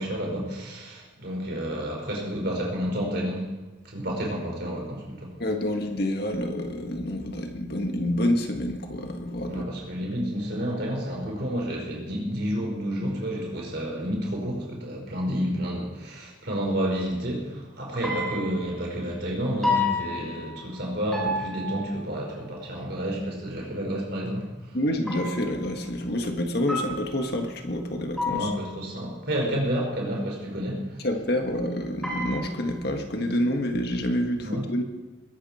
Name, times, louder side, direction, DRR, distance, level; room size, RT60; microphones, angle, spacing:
voice 1, 0.0-3.5 3.8-5.3 9.5-24.8 28.3-31.0 34.4-34.7, equal, 55° right, -1 dB, 5.0 m, -30 dB
voice 2, 5.4-9.7 24.7-28.5 31.0-34.8, left 1 dB, 50° left, 4 dB, 1.8 m, -28 dB
sound 1, 18.0-18.9 19.6-20.8 21.1-22.2 25.1-25.7 26.7-27.4 28.2-28.9 32.0-32.9, left 3 dB, ahead, 4.2 m, -30 dB
21.5 x 12.0 x 4.4 m, 1.2 s
head